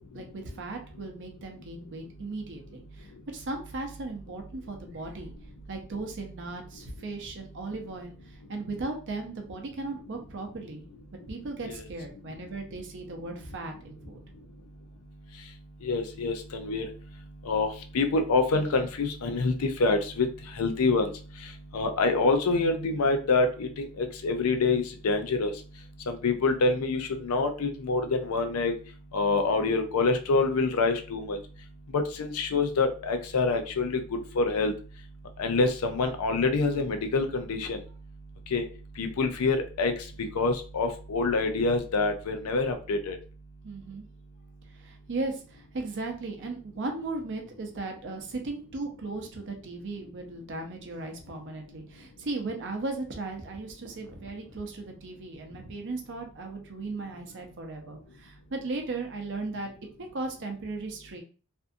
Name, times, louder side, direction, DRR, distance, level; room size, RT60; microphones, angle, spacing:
voice 1, 0.1-5.3 5.7-8.1 8.5-10.8 11.3-14.2 43.6-44.0 44.8-59.7 60.0-61.2, right 3 dB, 55° right, 3 dB, 0.6 m, -37 dB
voice 2, 15.8-16.9 17.5-20.3 20.6-21.1 21.7-25.5 26.1-28.7 29.1-31.4 31.9-34.0 34.4-34.7 35.4-37.8 38.5-38.6 39.0-39.9 40.4-43.2, left 3 dB, 70° left, 6 dB, 0.4 m, -26 dB
2.6 x 2.4 x 2.5 m, 0.38 s
head